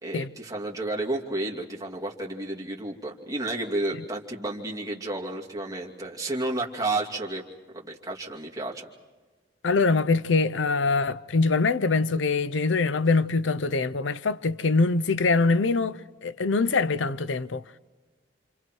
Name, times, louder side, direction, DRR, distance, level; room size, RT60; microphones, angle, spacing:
voice 1, 0.0-7.4 7.7-8.9, right 2 dB, 20° right, 2.6 m, -31 dB
voice 2, 9.6-17.6, left 3 dB, 85° left, 0.7 m, -24 dB
29.0 x 27.0 x 4.6 m
head